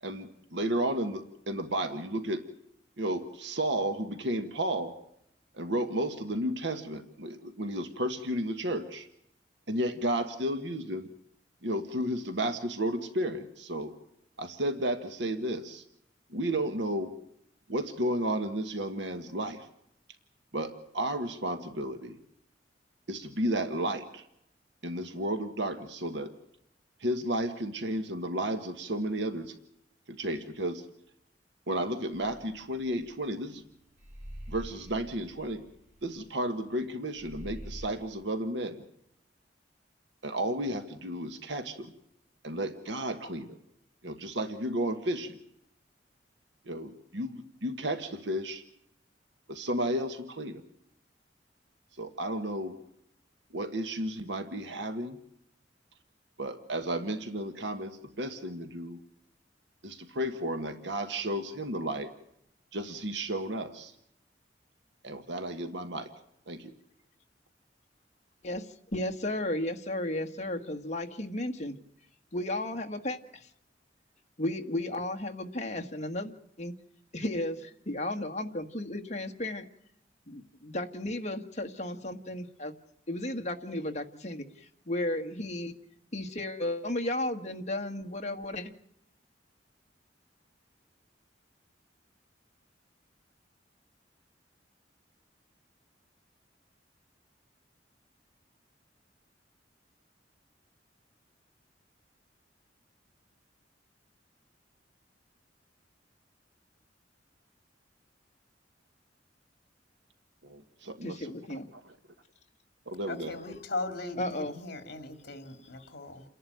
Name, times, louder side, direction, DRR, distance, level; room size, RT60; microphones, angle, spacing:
voice 1, 0.0-2.4 3.0-4.9 5.5-9.1 9.7-11.1 11.6-13.9 14.4-15.8 16.3-17.1 17.7-19.7 20.5-22.2 23.1-24.3 24.8-26.3 27.0-29.5 30.1-30.8 31.7-33.6 34.5-35.6 36.0-38.8 40.2-41.9 42.4-43.6 44.0-45.4 46.6-48.6 49.5-50.6 52.0-52.8 53.5-55.2 56.4-59.0 59.8-62.1 62.7-63.9 65.0-66.1 66.5-66.7 110.4-111.9 112.9-113.4, right 1 dB, 70° right, 1.5 m, -33 dB
sound 1, 32.1-33.6 34.0-36.9 37.2-38.1, equal, 40° right, 6.3 m, -45 dB
voice 2, 68.9-71.7 72.3-73.5 74.4-76.7 77.1-79.6 80.3-82.7 83.1-84.5 84.8-85.7 86.1-88.7 111.0-111.7 114.2-114.5, left 1 dB, 40° left, 1.6 m, -34 dB
voice 3, 113.1-116.2, left 2 dB, 60° left, 2.9 m, -38 dB
29.0 x 11.0 x 9.3 m
head